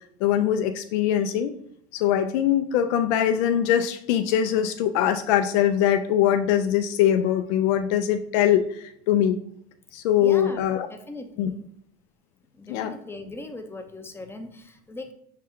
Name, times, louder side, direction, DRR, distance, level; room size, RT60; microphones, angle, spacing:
voice 1, 0.2-1.5 1.9-9.4 9.9-10.9 11.4-11.5 12.7-12.9, left 10 dB, 75° left, 7 dB, 0.5 m, -22 dB
voice 2, 10.2-11.6 12.5-15.1, left 2 dB, 5° left, 6 dB, 0.5 m, -40 dB
6.5 x 2.2 x 3.6 m, 0.69 s
supercardioid pair, 100°, 33 cm